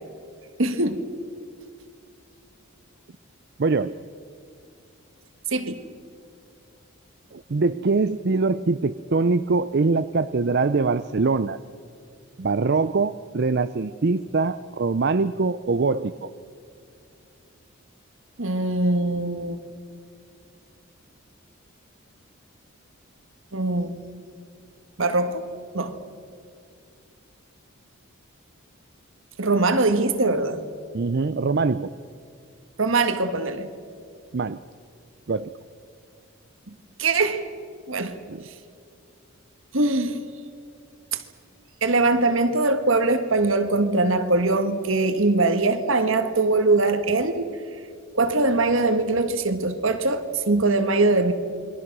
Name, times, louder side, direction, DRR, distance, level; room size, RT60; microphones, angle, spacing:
voice 1, 0.6-1.1 5.5-5.8 18.4-19.6 23.5-24.0 25.0-25.4 25.7-25.9 29.4-30.6 32.8-33.7 36.7-37.5 37.9-38.2 39.7-40.2 41.1-41.2 41.8-47.4 48.1-51.3, right 2 dB, 65° right, 8 dB, 1.7 m, -22 dB
voice 2, 3.6-3.9 7.3-11.6 12.4-16.3 30.9-31.9 34.3-34.6 35.3-35.5 38.3-38.4, right 4 dB, 50° right, 11 dB, 0.5 m, -23 dB
28.5 x 22.5 x 6.1 m, 2.4 s
head